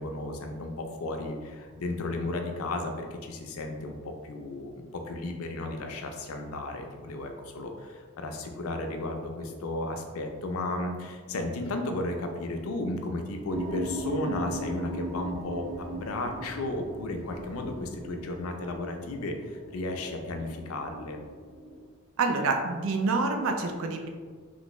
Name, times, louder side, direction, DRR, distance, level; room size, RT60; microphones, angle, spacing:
voice 1, 0.0-4.0 4.2-21.2, left 2 dB, 90° left, 4 dB, 0.5 m, -34 dB
sound 1, 13.5-21.8, right 1 dB, 15° right, 1.1 m, -39 dB
voice 2, 22.2-24.1, right 3 dB, 75° right, 4 dB, 0.4 m, -27 dB
3.2 x 2.5 x 3.0 m, 1.5 s
head